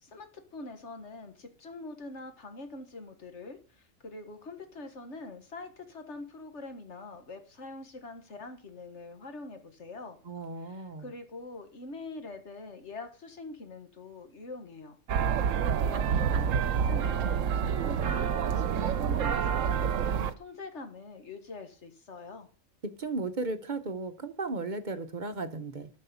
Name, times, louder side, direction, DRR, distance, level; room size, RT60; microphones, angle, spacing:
voice 1, 0.0-10.2 10.6-15.0 15.6-19.9 20.4-22.5, left 3 dB, 60° left, 1.9 m, -44 dB
voice 2, 10.3-11.1 22.8-25.9, right 3 dB, 40° right, 0.9 m, -35 dB
sound 1, 15.1-20.3, right 7 dB, 75° right, 1.1 m, -28 dB
12.5 x 5.4 x 7.0 m
omnidirectional pair, 1.4 m